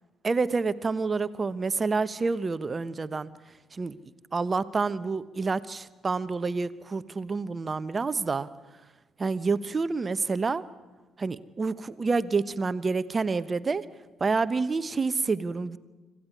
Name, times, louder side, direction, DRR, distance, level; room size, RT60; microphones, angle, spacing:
voice 1, 0.2-3.3 3.7-4.0 4.3-8.5 9.2-10.6 11.2-13.8 14.2-15.8, right 4 dB, 30° right, 16 dB, 1.0 m, -28 dB
25.5 x 15.5 x 9.8 m, 1.2 s
figure-of-eight pair, 45°, 0 cm